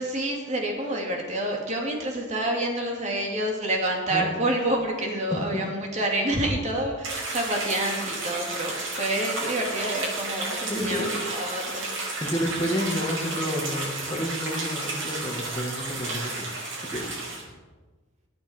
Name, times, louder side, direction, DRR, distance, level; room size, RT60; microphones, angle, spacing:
voice 1, 0.0-11.9, right 1 dB, 35° right, 0 dB, 2.6 m, -28 dB
voice 2, 5.3-5.7 10.7-11.1 12.2-16.5 16.8-17.4, equal, 15° left, 0 dB, 2.0 m, -30 dB
sound 1, 7.0-17.4, right 2 dB, 85° right, 5.7 m, -32 dB
22.5 x 8.8 x 4.5 m, 1.3 s
head